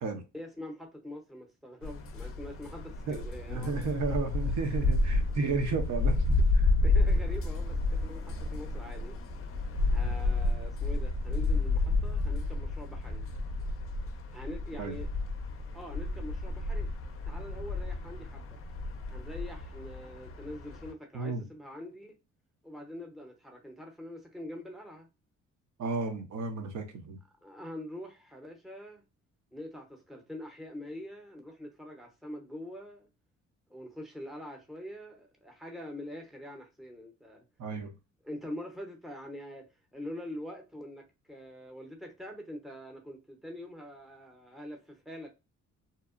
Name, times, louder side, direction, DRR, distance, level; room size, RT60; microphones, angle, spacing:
voice 1, 0.3-3.7 6.8-9.2 9.9-13.2 14.3-15.1 15.7-16.9 17.2-18.6 19.1-22.2 22.6-25.1 27.4-29.0 29.5-33.1 33.7-37.5 38.2-45.3, left 1 dB, ahead, 0.6 m, -44 dB
sound 1, 1.8-20.9, left 2 dB, 45° left, 0.5 m, -30 dB
voice 2, 3.1-6.2 6.5-6.7 14.8-15.0 21.1-21.4 25.8-27.2 37.6-37.9, right 4 dB, 65° right, 0.6 m, -33 dB
2.8 x 2.0 x 2.4 m
cardioid pair, 90°, 30 cm